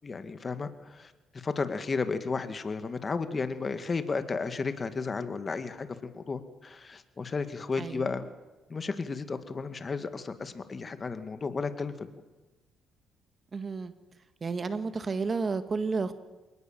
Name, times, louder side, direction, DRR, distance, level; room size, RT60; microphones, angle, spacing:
voice 1, 0.0-8.3 8.7-12.1, left 4 dB, 35° left, 10 dB, 2.2 m, -33 dB
voice 2, 7.8-8.1 13.5-13.9 14.4-16.1, right 4 dB, 35° right, 11 dB, 1.7 m, -31 dB
27.5 x 19.0 x 7.6 m, 1.1 s
cardioid pair, 90°, 0 cm